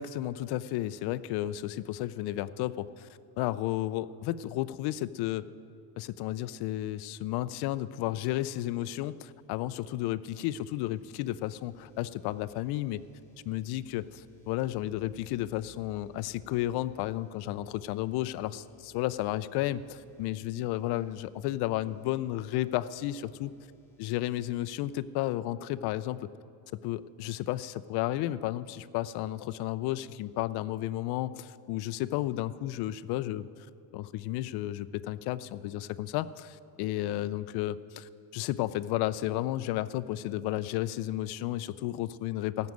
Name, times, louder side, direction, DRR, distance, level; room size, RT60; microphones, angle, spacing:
voice 1, 0.0-3.1 3.4-5.5 6.0-13.0 13.5-23.5 24.0-26.3 26.8-33.5 33.9-42.7, left 14 dB, 55° left, 14 dB, 0.5 m, -33 dB
sound 1, 8.9-24.7, left 6 dB, 5° left, 2.0 m, -61 dB
15.0 x 6.3 x 9.1 m, 2.6 s
cardioid pair, 145°, 49 cm